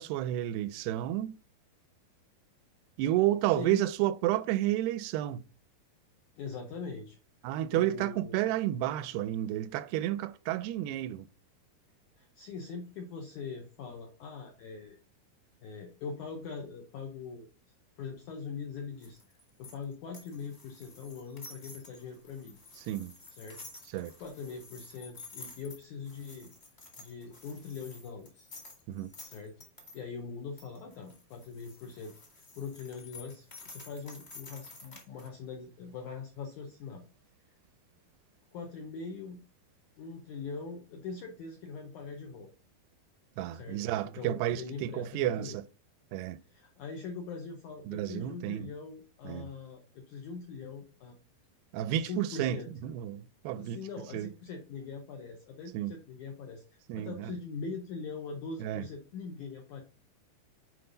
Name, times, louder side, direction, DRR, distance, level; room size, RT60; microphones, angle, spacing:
voice 1, 0.0-1.4 3.0-5.4 7.4-11.3 22.9-23.1 23.9-24.1 28.9-29.1 43.4-45.6 46.1-46.4 47.9-48.7 49.2-49.5 51.7-53.8 54.1-54.3 55.7-55.9 56.9-57.4 58.6-58.8, right 13 dB, 85° right, 2.5 m, -31 dB
voice 2, 3.5-3.8 6.4-7.2 7.7-8.4 12.2-15.0 15.6-17.5 18.0-19.2 19.6-22.6 23.3-23.6 24.2-26.5 27.0-28.5 29.2-29.5 29.9-37.0 38.5-39.4 40.0-42.5 43.5-45.6 46.4-51.2 51.9-52.7 53.5-59.8, left 5 dB, 80° left, 1.7 m, -42 dB
sound 1, 19.0-30.0 30.6-35.3, left 3 dB, 30° left, 1.1 m, -51 dB
7.9 x 4.9 x 3.9 m
omnidirectional pair, 4.7 m